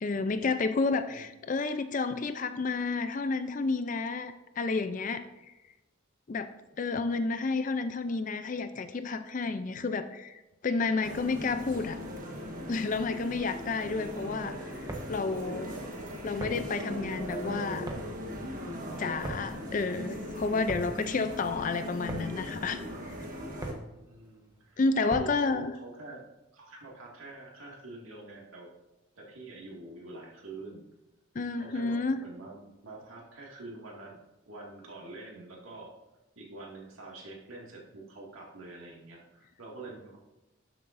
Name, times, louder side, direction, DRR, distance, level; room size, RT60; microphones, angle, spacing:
voice 1, 0.0-5.3 6.3-6.5 6.8-12.0 12.7-15.7 16.2-17.9 19.0-22.8 23.0-23.1 24.8-25.7 31.3-32.2, left 3 dB, 40° left, 10 dB, 0.4 m, -31 dB
sound 1, 11.0-23.7, left 1 dB, 40° right, 1.4 m, -39 dB
sound 2, 14.9-25.6, right 1 dB, 20° right, 1.0 m, -43 dB
voice 2, 23.6-26.3 26.5-28.7 29.2-30.8 31.6-34.2 34.5-35.9 36.4-40.2, right 2 dB, 80° right, -2 dB, 2.1 m, -46 dB
12.5 x 7.3 x 2.6 m, 1.0 s
head